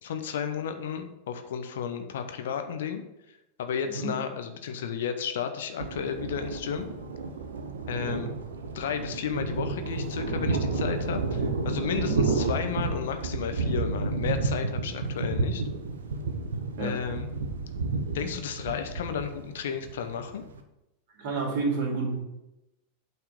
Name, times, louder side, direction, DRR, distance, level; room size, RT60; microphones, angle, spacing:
voice 1, 0.0-3.0 3.3-6.9 7.9-8.3 8.7-15.6 16.8-17.3 18.1-20.4, left 7 dB, 60° left, 8 dB, 0.8 m, -33 dB
Thunder, 5.8-20.6, right 3 dB, 70° right, 0.9 m, -31 dB
voice 2, 7.9-8.2 12.0-12.2 16.8-17.0 21.2-22.2, right 3 dB, 50° right, -2 dB, 2.6 m, -30 dB
8.5 x 4.6 x 5.1 m, 0.91 s
figure-of-eight pair, 90°, 0 cm